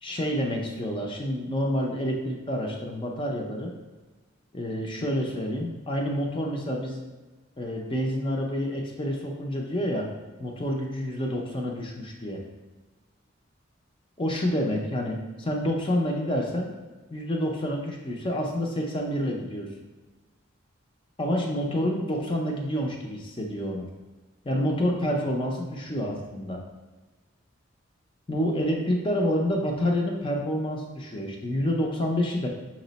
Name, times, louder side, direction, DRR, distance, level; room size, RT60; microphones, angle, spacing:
voice 1, 0.0-3.7 4.5-7.0 7.6-10.1 10.4-12.4 14.2-16.7 17.1-19.7 21.2-23.9 24.5-26.6 28.3-32.5, equal, 25° left, 0 dB, 0.5 m, -28 dB
5.8 x 2.0 x 3.9 m, 1.2 s
head